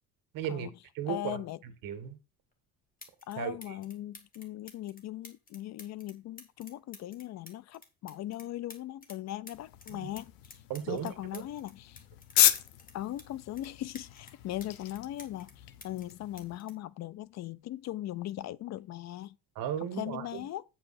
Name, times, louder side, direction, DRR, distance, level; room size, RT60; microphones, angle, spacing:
voice 1, 0.3-0.7 0.9-2.2 3.3-3.7 9.9-10.1 10.7-11.4 19.5-20.5, right 9 dB, 70° right, 1.7 m, -36 dB
voice 2, 1.1-1.6 3.3-10.6 10.9-12.0 12.9-19.4 20.0-20.6, left 14 dB, 50° left, 0.5 m, -39 dB
sound 1, 2.5-2.6 3.0-3.4 3.6-9.2 9.5-13.3 13.6-15.5 15.8-17.6 18.6-18.8, left 3 dB, 25° left, 1.9 m, -52 dB
sound 2, 9.5-16.6, left 13 dB, 80° left, 1.0 m, -33 dB
8.7 x 5.6 x 4.2 m
cardioid pair, 135°, 35 cm